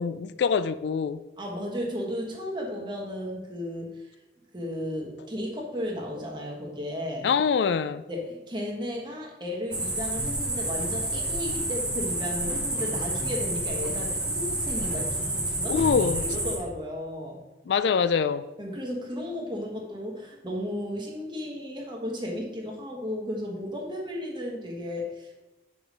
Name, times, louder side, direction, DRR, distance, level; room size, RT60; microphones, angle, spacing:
voice 1, 0.0-1.2 7.2-8.0 15.7-16.2 17.7-18.4, left 6 dB, 80° left, 13 dB, 0.3 m, -24 dB
voice 2, 1.4-4.1 4.5-7.3 8.1-15.8 16.2-17.4 18.6-25.3, left 1 dB, 25° right, -1 dB, 1.3 m, -34 dB
sound 1, 9.7-16.6, right 1 dB, 5° right, 0.9 m, -29 dB
6.0 x 5.0 x 5.2 m, 1.0 s
head